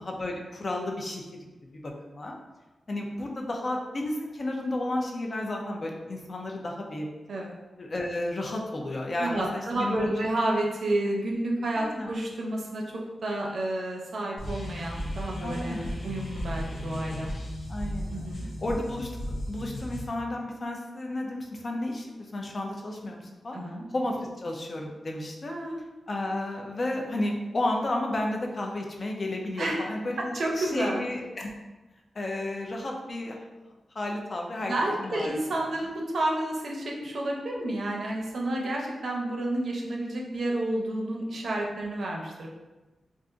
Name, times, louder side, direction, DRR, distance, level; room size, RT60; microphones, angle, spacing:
voice 1, 0.0-1.3 1.8-2.3 2.9-7.1 7.8-10.3 11.7-12.1 15.4-16.0 17.7-18.3 18.6-19.1 19.5-23.6 23.9-25.5 26.1-31.5 32.1-33.4 33.9-35.3, left 1 dB, 35° left, 1 dB, 0.4 m, -32 dB
voice 2, 9.2-12.8 13.2-17.3 18.1-18.5 23.5-23.8 25.5-25.7 29.6-29.8 30.3-31.0 34.6-42.5, right 1 dB, 55° right, -1 dB, 0.6 m, -30 dB
sound 1, 14.4-20.1, equal, 75° left, 0.7 m, -35 dB
2.4 x 2.4 x 3.7 m, 1.1 s
wide cardioid pair, 165°, 0 cm